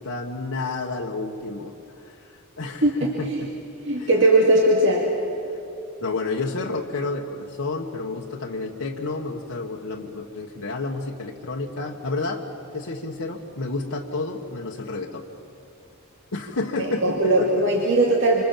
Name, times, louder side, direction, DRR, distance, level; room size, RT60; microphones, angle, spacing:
voice 1, 0.0-3.5 4.0-4.1 5.5-5.6 6.0-12.4 12.7-15.2 16.3-17.6, left 3 dB, 85° left, -1 dB, 1.5 m, -30 dB
voice 2, 2.8-3.5 3.8-5.1 16.8-18.4, right 1 dB, 55° right, -1 dB, 2.5 m, -19 dB
26.5 x 25.5 x 7.5 m, 2.8 s
head